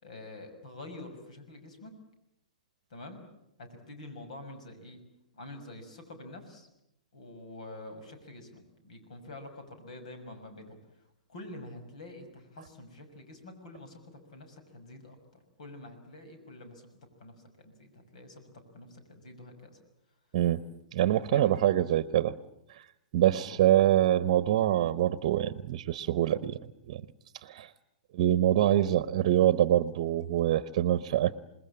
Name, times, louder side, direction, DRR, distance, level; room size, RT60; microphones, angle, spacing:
voice 1, 0.0-1.9 2.9-3.2 3.6-5.0 5.3-6.7 7.1-10.8 11.3-16.9 17.2-18.4 18.7-19.8 21.3-21.5 21.8-21.9 23.2-23.6, left 2 dB, 65° left, 7 dB, 6.4 m, -47 dB
voice 2, 20.9-22.3 22.7-22.8 23.1-26.6 26.9-27.0 27.4-27.7 28.1-31.4, right 12 dB, 50° right, 16 dB, 0.9 m, -25 dB
27.0 x 20.5 x 8.7 m, 0.84 s
figure-of-eight pair, 110°, 4 cm